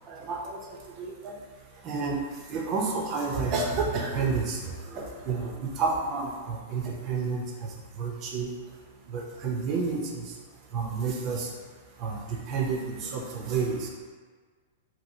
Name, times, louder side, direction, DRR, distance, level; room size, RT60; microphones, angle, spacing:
voice 1, 0.1-0.6 1.0-1.1 1.8-2.2 2.5-7.4 8.0-8.5 9.1-10.2 10.7-11.5 12.0-12.2 12.5-13.9, right 4 dB, 40° right, 0 dB, 0.6 m, -30 dB
2.8 x 2.8 x 2.7 m, 1.5 s
hypercardioid pair, 130°, 0 cm